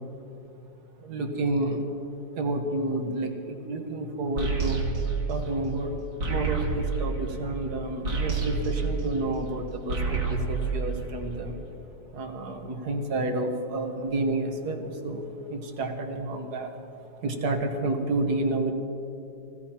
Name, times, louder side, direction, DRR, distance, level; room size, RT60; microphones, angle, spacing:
voice 1, 1.0-1.8 2.4-4.8 5.3-5.9 6.3-11.6 12.1-16.7 17.2-18.7, right 2 dB, 60° right, 4 dB, 1.9 m, -30 dB
sound 1, 4.4-9.5 9.8-11.6, right 4 dB, 80° right, 3.1 m, -29 dB
26.0 x 16.0 x 3.0 m, 2.8 s
omnidirectional pair, 2.0 m